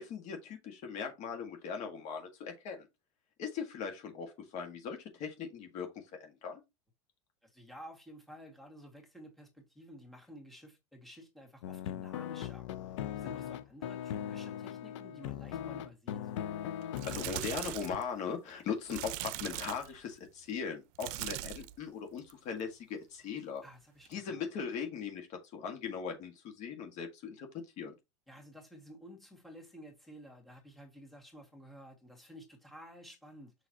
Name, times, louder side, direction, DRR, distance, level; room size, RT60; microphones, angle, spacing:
voice 1, 0.0-2.9 3.4-6.6 17.1-23.6 24.1-27.9, left 6 dB, 50° left, 1.9 m, -39 dB
voice 2, 7.4-12.7 13.2-16.2 23.6-24.5 28.3-33.5, equal, ahead, 2.1 m, -52 dB
sound 1, 11.6-18.0, left 10 dB, 75° left, 0.7 m, -39 dB
sound 2, 16.8-18.0 18.9-20.0 20.9-21.8 22.2-22.5 24.1-24.2, right 16 dB, 60° right, 0.6 m, -40 dB
6.2 x 5.8 x 2.9 m
supercardioid pair, 110°, 16 cm